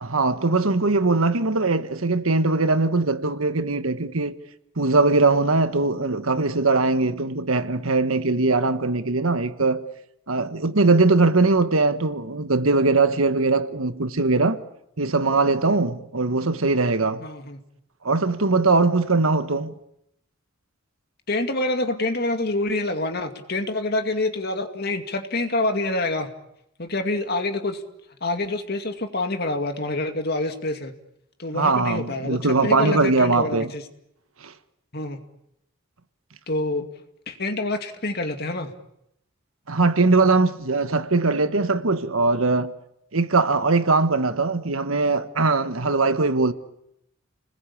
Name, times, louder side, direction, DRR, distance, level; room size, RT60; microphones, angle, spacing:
voice 1, 0.0-4.4 4.8-9.8 10.3-14.6 15.0-17.2 18.0-19.7 31.5-33.7 34.4-34.5 39.7-42.7 43.1-46.5, right 3 dB, 80° right, 1.4 m, -21 dB
voice 2, 17.2-17.6 21.3-26.3 26.8-27.8 28.2-30.9 31.4-33.8 34.9-35.2 36.5-36.9 37.3-38.7, left 2 dB, 50° left, 2.3 m, -27 dB
30.0 x 20.5 x 8.6 m
head